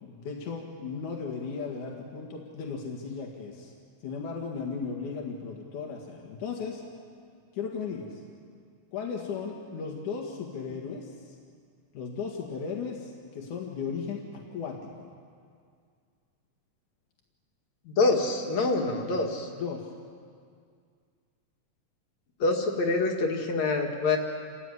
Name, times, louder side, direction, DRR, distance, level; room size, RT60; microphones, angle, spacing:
voice 1, 0.0-3.7 4.0-6.8 7.5-8.2 8.9-11.4 11.9-15.1 19.6-19.9, left 5 dB, 85° left, 0 dB, 3.4 m, -36 dB
voice 2, 17.9-19.5 22.4-24.2, left 3 dB, 65° left, 2 dB, 3.3 m, -26 dB
29.0 x 15.5 x 9.6 m, 2.2 s
omnidirectional pair, 3.4 m